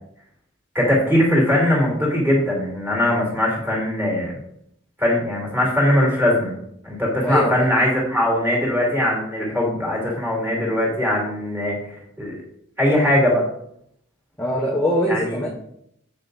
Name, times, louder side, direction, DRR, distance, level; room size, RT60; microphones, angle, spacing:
voice 1, 0.7-4.3 5.0-6.5 6.8-11.8 12.2-12.4 12.8-13.4 15.1-15.2, left 1 dB, 10° right, -4 dB, 2.8 m, -20 dB
voice 2, 7.2-7.7 14.4-15.5, equal, 5° left, -3 dB, 1.0 m, -22 dB
8.0 x 6.6 x 4.0 m, 0.73 s
head